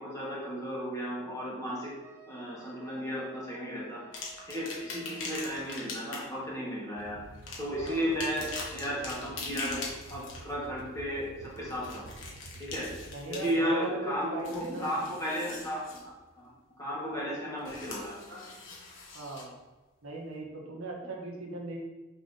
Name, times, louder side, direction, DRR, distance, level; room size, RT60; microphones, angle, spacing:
voice 1, 0.0-1.9 2.3-4.0 4.5-7.2 7.6-9.8 10.1-12.1 12.6-12.9 13.3-15.9 16.8-18.5, equal, 15° left, -6 dB, 2.0 m, -34 dB
Wind instrument woodwind instrument, 2.0-5.9, right 5 dB, 10° right, 0.7 m, -56 dB
sound 1, 4.1-6.4 7.3-10.5 11.6-13.8 14.2-16.0 17.6-19.4 20.3-20.4, left 3 dB, 70° left, 1.5 m, -42 dB
sound 2, 7.0-13.2, right 2 dB, 65° right, 0.5 m, -49 dB
voice 2, 7.8-8.1 13.1-14.9 19.1-19.5 20.0-21.8, right 2 dB, 90° right, -1 dB, 1.5 m, -38 dB
6.1 x 4.1 x 5.5 m, 1.2 s
head